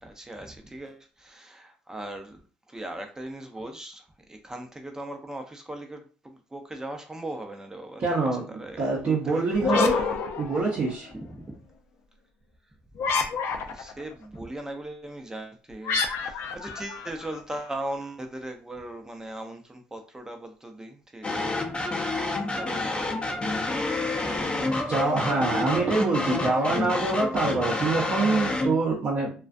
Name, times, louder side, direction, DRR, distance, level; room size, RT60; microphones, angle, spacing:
voice 1, 0.0-2.4 2.7-10.2 11.2-11.5 13.5-24.9 26.2-26.4, right 1 dB, 15° right, 0.6 m, -39 dB
voice 2, 8.0-9.9 10.4-11.1 24.9-29.3, right 3 dB, 45° right, 0.7 m, -25 dB
sound 1, 9.5-11.1 13.0-14.0 15.8-17.7, left 5 dB, 65° left, 0.4 m, -28 dB
sound 2, 21.2-28.8, left 2 dB, 25° left, 0.7 m, -28 dB
2.3 x 2.2 x 2.5 m
supercardioid pair, 75°, 4 cm